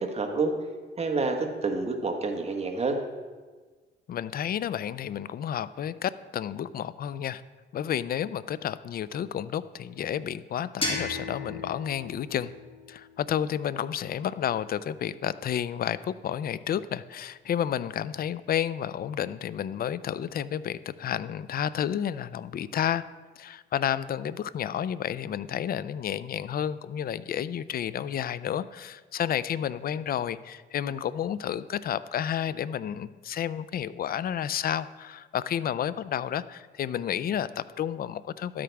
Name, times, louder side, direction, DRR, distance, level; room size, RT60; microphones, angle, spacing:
voice 1, 0.0-0.5 1.0-3.0, right 3 dB, 30° right, 3 dB, 1.4 m, -28 dB
voice 2, 4.1-7.4 7.7-12.5 12.9-23.1 23.4-38.6, left 9 dB, 50° left, 16 dB, 0.4 m, -31 dB
sound 1, 10.8-13.6, left 2 dB, 30° left, 2.8 m, -35 dB
12.0 x 8.6 x 3.5 m, 1.4 s
cardioid pair, 90°, 20 cm